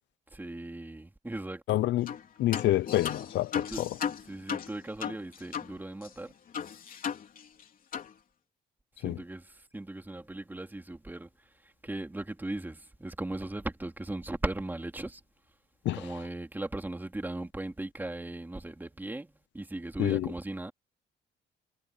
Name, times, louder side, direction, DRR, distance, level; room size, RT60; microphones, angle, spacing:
voice 1, 0.3-1.8 3.7-3.8 4.3-6.3 9.0-11.3 11.6-15.2 15.9-20.7, right 2 dB, 10° right, 2.8 m, -38 dB
voice 2, 1.7-3.9 9.0-9.2 15.9-16.0 20.0-20.3, left 14 dB, 75° left, 0.6 m, -28 dB
sound 1, 2.1-2.2 2.5-5.7 6.0-6.1 6.5-7.6 7.9-8.1, left 7 dB, 50° left, 3.3 m, -36 dB
cardioid pair, 125°, 19 cm